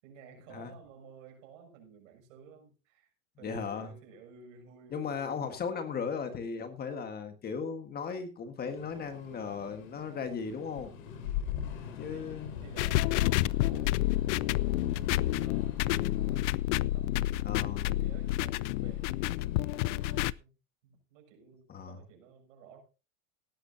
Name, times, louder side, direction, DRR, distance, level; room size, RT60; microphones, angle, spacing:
voice 1, 0.0-5.4 12.1-20.5 20.8-22.8, right 5 dB, 65° right, 6.6 m, -54 dB
voice 2, 3.4-3.9 4.9-10.9 12.0-12.5 17.4-17.9 21.7-22.0, left 6 dB, 25° left, 1.5 m, -36 dB
sound 1, 8.6-20.2, left 8 dB, 80° left, 4.0 m, -43 dB
sound 2, 12.8-20.3, left 16 dB, 60° left, 0.5 m, -29 dB
17.5 x 11.5 x 2.8 m
supercardioid pair, 140°, 40 cm